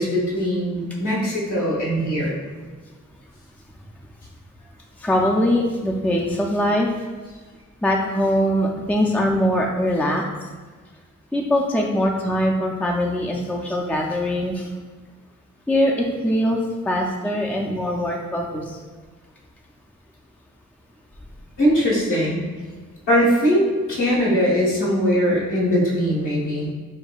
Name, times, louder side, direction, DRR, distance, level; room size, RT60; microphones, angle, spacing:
voice 1, 0.0-2.3 21.6-22.4 23.1-26.7, equal, 75° left, -7 dB, 1.3 m, -20 dB
voice 2, 5.0-6.9 7.8-10.2 11.3-14.7 15.7-18.8, equal, 5° left, 0 dB, 0.4 m, -22 dB
6.6 x 2.6 x 2.3 m, 1.4 s
wide cardioid pair, 90°, 31 cm